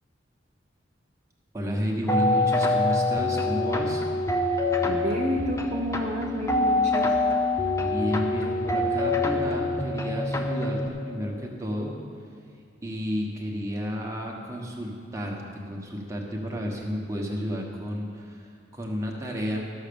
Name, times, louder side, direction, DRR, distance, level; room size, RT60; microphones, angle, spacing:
voice 1, 1.5-4.0 7.8-10.8 11.1-11.9 12.8-18.4 18.7-19.7, equal, 15° right, -1 dB, 1.3 m, -31 dB
sound 1, 2.1-10.9, left 2 dB, 15° left, 0.7 m, -25 dB
voice 2, 4.9-7.1, right 1 dB, 40° right, -1 dB, 0.6 m, -30 dB
13.0 x 6.5 x 7.0 m, 2.4 s
head